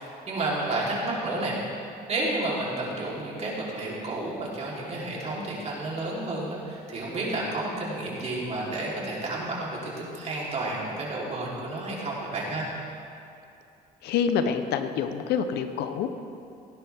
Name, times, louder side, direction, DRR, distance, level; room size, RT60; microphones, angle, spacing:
voice 1, 0.0-1.6 2.1-12.7, right 2 dB, 40° right, -5 dB, 3.4 m, -31 dB
voice 2, 14.0-16.1, left 7 dB, 75° left, 9 dB, 0.8 m, -27 dB
17.0 x 10.5 x 3.5 m, 2.6 s
cardioid pair, 110°, 17 cm